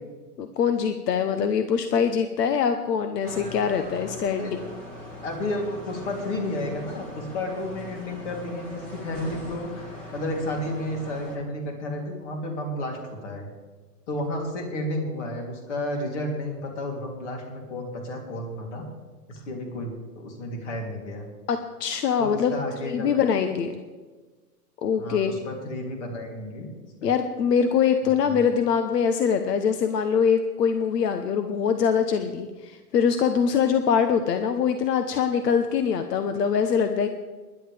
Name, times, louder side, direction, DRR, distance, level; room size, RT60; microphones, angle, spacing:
voice 1, 0.4-4.7 21.5-22.5 22.8-23.8 24.8-25.3 27.0-37.1, left 7 dB, 85° left, 8 dB, 1.1 m, -23 dB
sound 1, 3.2-11.4, left 1 dB, 15° left, 1.7 m, -40 dB
voice 2, 5.2-13.5 14.1-18.9 19.3-19.9 20.1-21.3 22.2-23.3 25.0-26.7 27.0-27.1 28.2-28.4, left 1 dB, 45° left, 1 dB, 3.2 m, -32 dB
20.5 x 11.0 x 3.5 m, 1.3 s
hypercardioid pair, 175°, 47 cm